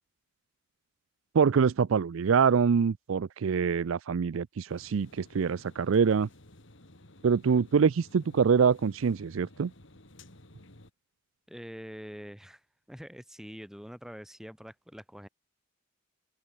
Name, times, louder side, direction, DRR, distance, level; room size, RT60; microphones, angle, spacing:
voice 1, 1.3-6.3 7.2-9.7, right 6 dB, 75° right, 0.4 m, -25 dB
sound 1, 4.7-10.9, left 1 dB, 60° left, 3.4 m, -54 dB
voice 2, 11.5-12.6 12.9-15.3, equal, ahead, 6.0 m, -45 dB
head